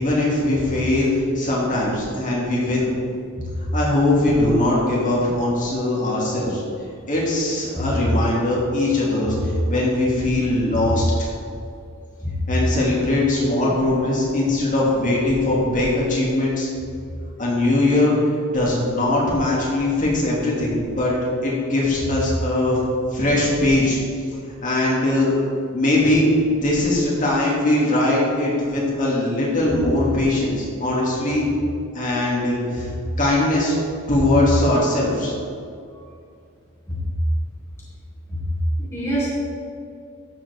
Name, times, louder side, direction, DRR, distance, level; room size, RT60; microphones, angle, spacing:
voice 1, 0.0-2.9 3.7-6.6 7.1-11.3 12.5-16.7 17.4-18.1 18.5-21.1 21.4-22.8 23.1-24.0 24.6-25.3 25.7-31.4 31.9-32.9 33.2-33.8 34.1-35.3, left 1 dB, 40° left, -5 dB, 2.5 m, -20 dB
voice 2, 38.8-39.3, right 1 dB, 15° left, -8 dB, 2.1 m, -26 dB
13.5 x 7.3 x 3.5 m, 2.3 s
head